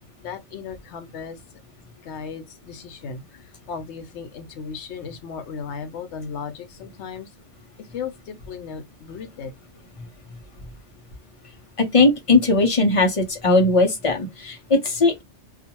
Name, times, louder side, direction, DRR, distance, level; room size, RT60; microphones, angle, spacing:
voice 1, 0.2-1.4 2.0-3.4 3.7-7.3 7.8-9.5, left 6 dB, 75° left, 0.9 m, -36 dB
voice 2, 11.8-15.2, left 3 dB, 35° left, 0.6 m, -19 dB
2.5 x 2.3 x 2.8 m
omnidirectional pair, 1.2 m